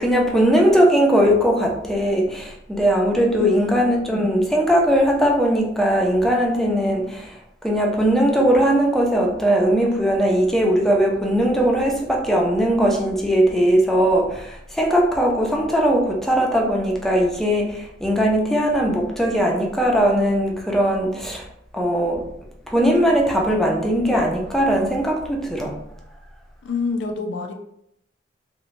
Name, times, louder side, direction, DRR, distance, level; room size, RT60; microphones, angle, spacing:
voice 1, 0.0-21.5 21.7-22.3 22.7-25.8, equal, ahead, -1 dB, 0.4 m, -19 dB
voice 2, 3.4-3.7 26.6-27.5, left 4 dB, 75° left, 5 dB, 0.3 m, -26 dB
2.9 x 2.1 x 2.4 m, 0.75 s
head